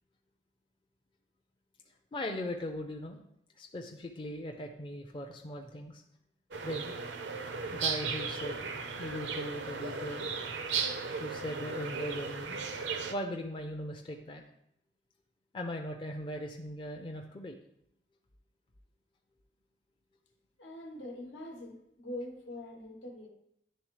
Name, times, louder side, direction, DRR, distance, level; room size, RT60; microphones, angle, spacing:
voice 1, 2.1-3.2 3.6-6.0 6.6-7.0 7.7-8.7 9.0-10.3 11.2-12.6 13.1-14.4 15.5-17.6, left 1 dB, 30° left, 2 dB, 0.4 m, -39 dB
sound 1, 6.5-13.1, right 5 dB, 80° right, 0.6 m, -36 dB
voice 2, 20.6-23.3, left 1 dB, 90° left, 2 dB, 1.2 m, -43 dB
10.5 x 3.5 x 3.1 m, 0.76 s
head